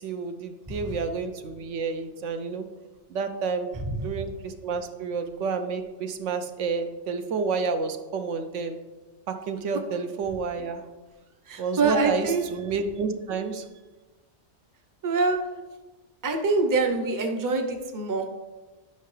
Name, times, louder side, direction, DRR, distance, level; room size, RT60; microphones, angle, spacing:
voice 1, 0.0-2.6 3.1-8.8 9.3-10.8 11.6-13.7, right 5 dB, 80° right, 7 dB, 1.0 m, -30 dB
voice 2, 0.7-1.0 3.9-4.0 11.5-12.4 15.0-15.4 16.2-18.3, right 3 dB, 20° right, 4 dB, 0.6 m, -25 dB
11.0 x 5.5 x 3.2 m, 1.2 s
omnidirectional pair, 1.3 m